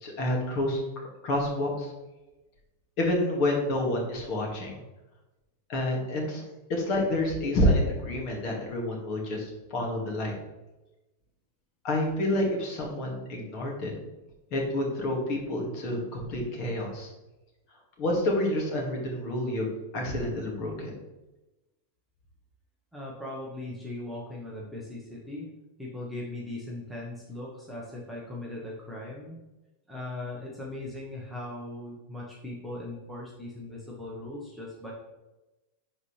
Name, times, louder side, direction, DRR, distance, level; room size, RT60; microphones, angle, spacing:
voice 1, 0.0-1.9 3.0-4.8 5.7-6.4 6.7-10.3 11.8-13.9 14.5-17.1 18.0-20.9, left 1 dB, 40° left, 0 dB, 2.0 m, -28 dB
voice 2, 22.9-25.5 25.8-29.4 29.9-34.9, left 2 dB, ahead, -5 dB, 1.1 m, -39 dB
11.0 x 4.2 x 3.3 m, 1.0 s
supercardioid pair, 155°, 0 cm